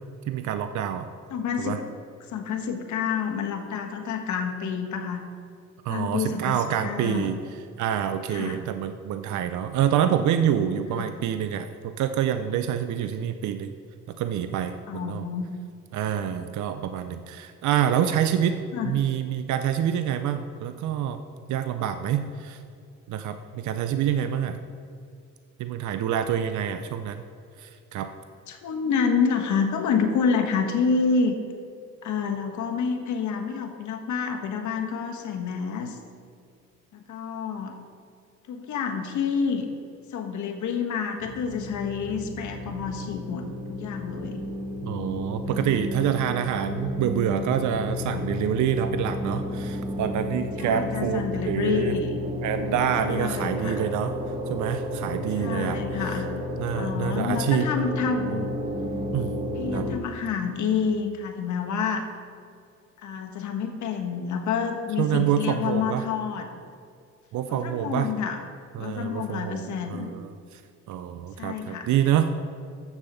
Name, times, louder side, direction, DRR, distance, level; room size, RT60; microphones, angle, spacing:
voice 1, 0.3-1.1 1.6-1.8 5.8-7.4 7.8-13.7 14.2-15.2 15.9-18.6 18.8-22.6 23.1-24.6 25.6-27.2 27.6-28.1 44.8-52.0 52.4-54.1 54.5-56.2 56.6-57.7 59.1-59.3 59.7-59.9 65.0-66.0 67.3-68.1 68.7-70.6 70.9-72.3, right 9 dB, 75° right, 9 dB, 0.6 m, -27 dB
voice 2, 1.3-1.8 2.3-5.2 5.9-7.4 8.3-8.6 10.9-11.1 14.9-15.5 18.7-18.9 28.5-31.4 32.0-36.0 36.9-37.7 38.5-39.6 40.1-44.4 45.5-45.7 50.6-52.1 53.1-53.8 55.4-56.3 56.7-58.5 59.6-62.1 63.0-66.5 67.5-68.4 68.8-70.1 71.4-71.9, left 6 dB, 75° left, 4 dB, 1.3 m, -28 dB
sound 1, 41.2-60.0, left 2 dB, 15° right, 1.1 m, -32 dB
7.4 x 7.0 x 6.7 m, 2.3 s
cardioid pair, 90°, 30 cm